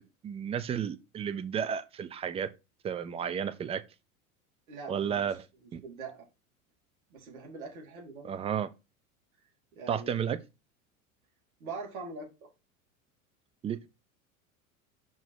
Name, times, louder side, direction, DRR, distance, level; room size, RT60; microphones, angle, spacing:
voice 1, 0.0-2.5 2.8-3.8 4.9-5.5 5.7-5.8 8.2-8.7 9.9-10.4 13.6-13.9, right 8 dB, 15° right, 0.3 m, -32 dB
voice 2, 4.7-5.3 5.8-6.3 7.1-8.3 9.7-10.2 11.6-12.3, right 4 dB, 70° right, 2.6 m, -42 dB
5.4 x 4.0 x 4.7 m
hypercardioid pair, 85°, 43 cm